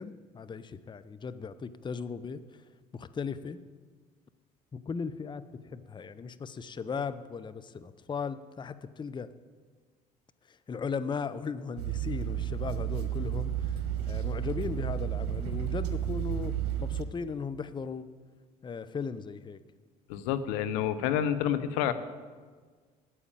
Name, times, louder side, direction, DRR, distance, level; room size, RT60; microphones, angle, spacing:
voice 1, 0.0-2.4 2.9-3.6 4.7-9.3 10.5-13.8 14.1-18.1 18.6-19.6, left 5 dB, 25° left, 13 dB, 0.6 m, -37 dB
sound 1, 11.8-17.0, right 10 dB, 80° right, 1.1 m, -32 dB
voice 2, 20.1-21.9, left 10 dB, 75° left, 12 dB, 0.8 m, -28 dB
9.0 x 8.5 x 8.9 m, 1.5 s
hypercardioid pair, 60°, 20 cm